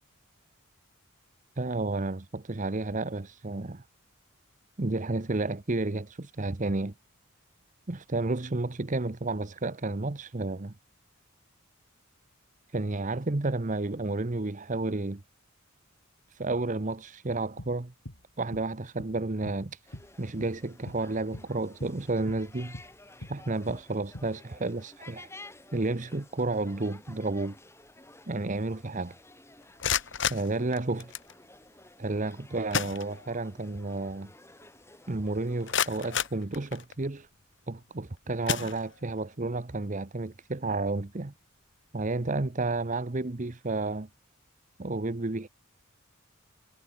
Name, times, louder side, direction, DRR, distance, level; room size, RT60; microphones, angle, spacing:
voice 1, 1.6-3.8 4.8-6.9 7.9-10.7 12.7-15.2 16.3-17.9 18.4-19.8 20.2-22.8 23.3-25.3 25.7-27.6 28.3-29.2 30.3-31.1 32.0-34.3 35.1-37.3 37.7-41.3 41.9-44.1 44.8-45.5, right 2 dB, 35° right, 0.9 m, -31 dB
sound 1, 17.6-20.6 20.9-21.1 21.3-24.4, left 1 dB, 75° left, 3.2 m, -44 dB
sound 2, 19.9-36.3, left 2 dB, 10° left, 6.3 m, -53 dB
sound 3, 29.6-31.3 32.3-32.4 32.7-33.6 34.0-34.1 34.6-34.7 35.3-37.1 37.8-38.0 38.4-39.3, left 7 dB, 60° left, 3.2 m, -32 dB
head